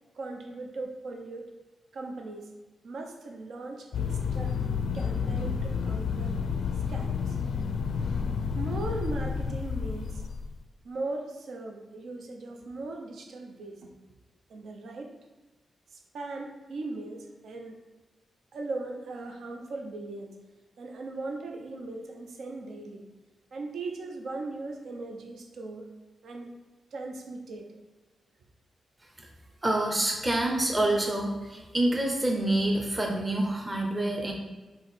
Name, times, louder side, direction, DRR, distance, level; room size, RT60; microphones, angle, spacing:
voice 1, 0.1-1.5 1.9-2.5 2.8-4.6 4.9-6.4 6.9-7.4 8.5-10.2 10.8-13.9 14.5-15.2 15.9-17.8 18.5-20.4 20.8-23.0 23.5-25.9 26.2-26.5 26.9-27.7, right 2 dB, 75° right, 2 dB, 0.8 m, -38 dB
sound 1, 3.9-10.5, left 6 dB, 75° left, 0.4 m, -30 dB
voice 2, 29.6-34.3, right 1 dB, 15° right, 1 dB, 0.8 m, -27 dB
4.6 x 3.8 x 5.5 m, 1.2 s
wide cardioid pair, 175°, 0 cm